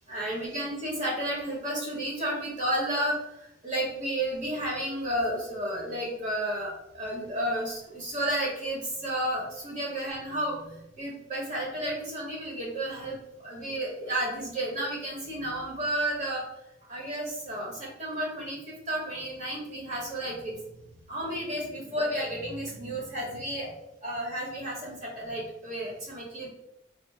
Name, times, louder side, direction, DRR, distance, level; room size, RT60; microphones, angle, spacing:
voice 1, 0.1-16.5 16.9-20.6 21.1-23.7 24.0-26.5, right 1 dB, 40° right, -3 dB, 1.0 m, -32 dB
3.2 x 2.1 x 3.2 m, 0.86 s
head